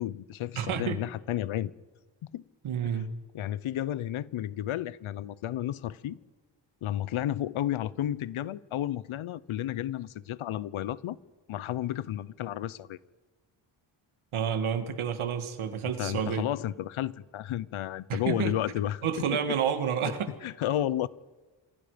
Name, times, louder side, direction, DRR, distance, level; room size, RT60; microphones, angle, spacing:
voice 1, 0.0-1.7 2.2-2.4 2.8-2.9 3.3-6.2 6.8-11.2 11.5-13.0 16.0-19.4 20.4-21.1, left 12 dB, 80° left, 0.9 m, -32 dB
voice 2, 0.6-1.0 2.6-3.1 14.3-16.5 18.1-18.6 19.0-20.3, right 8 dB, 85° right, 2.3 m, -29 dB
28.5 x 25.5 x 5.2 m
wide cardioid pair, 145°, 48 cm